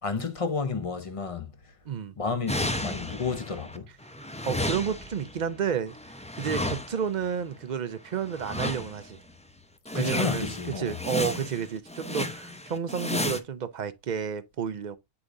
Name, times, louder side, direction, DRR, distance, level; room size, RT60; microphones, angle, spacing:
voice 1, 0.0-1.5 2.2-3.9 9.9-11.0, left 5 dB, 35° left, 0.7 m, -31 dB
sound 1, 2.5-3.8 4.0-7.2 8.2-9.1 9.5-9.6 9.9-13.4, left 1 dB, 10° left, 0.4 m, -33 dB
voice 2, 4.5-9.2 9.9-15.0, right 7 dB, 50° right, 0.6 m, -31 dB
8.5 x 4.8 x 2.5 m
omnidirectional pair, 1.2 m